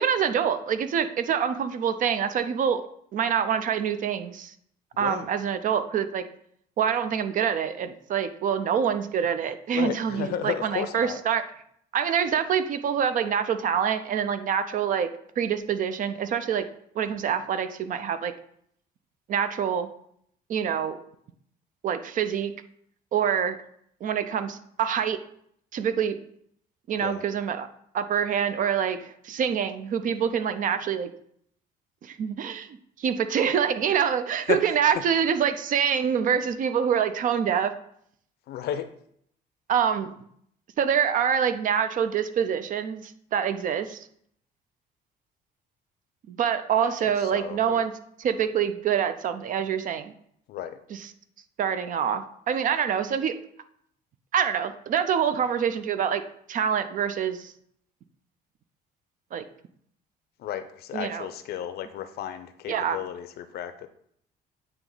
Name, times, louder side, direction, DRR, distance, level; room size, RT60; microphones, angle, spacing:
voice 1, 0.0-2.8 3.1-4.5 5.0-6.2 6.8-11.4 11.9-15.1 15.4-16.7 17.0-18.3 19.3-19.9 20.5-21.0 21.8-22.5 23.1-23.6 24.0-25.2 25.7-26.2 26.9-27.7 27.9-31.1 32.0-32.7 33.0-37.7 39.7-40.1 40.8-44.1 46.3-47.9 48.2-50.1 50.9-51.1 51.6-53.3 54.3-56.2 56.5-57.5 59.3-59.4 60.9-61.3 62.7-63.0, right 8 dB, 50° right, 10 dB, 0.6 m, -26 dB
voice 2, 9.7-11.2 27.0-27.2 34.5-34.6 34.9-35.0 38.5-38.9 46.8-47.8 50.5-50.8 60.4-63.9, left 10 dB, 70° left, 10 dB, 0.6 m, -33 dB
8.8 x 2.9 x 3.9 m, 0.68 s
cardioid pair, 110°, 17 cm